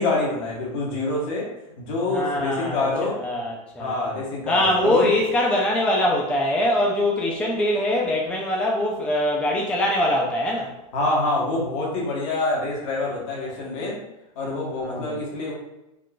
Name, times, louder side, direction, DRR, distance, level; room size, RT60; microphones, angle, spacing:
voice 1, 0.0-1.5 1.8-3.2 3.8-5.1 10.9-14.0 14.3-15.5, left 2 dB, 65° left, -3 dB, 1.2 m, -26 dB
voice 2, 2.1-2.9 3.2-4.1 4.5-10.7 14.8-15.2, left 1 dB, 5° left, -2 dB, 0.4 m, -23 dB
3.6 x 2.4 x 2.3 m, 0.93 s
supercardioid pair, 135°, 18 cm